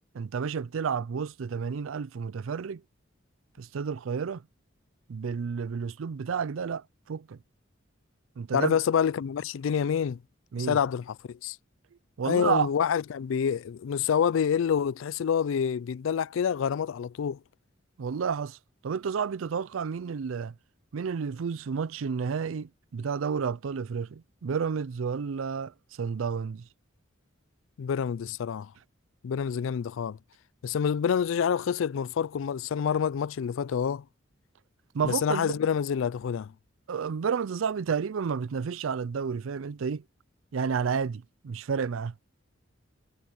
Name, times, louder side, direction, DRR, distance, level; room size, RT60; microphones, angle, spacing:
voice 1, 0.0-2.8 3.6-4.4 5.1-7.4 8.4-8.8 10.5-10.8 12.2-12.7 18.0-18.6 18.8-20.5 20.9-26.7 34.9-35.6 36.9-40.0 40.5-42.1, right 6 dB, 85° right, 0.4 m, -31 dB
voice 2, 8.5-10.2 10.6-11.6 12.2-17.4 27.8-28.7 29.2-30.2 30.6-34.0 35.0-36.5, left 7 dB, 75° left, 0.4 m, -27 dB
head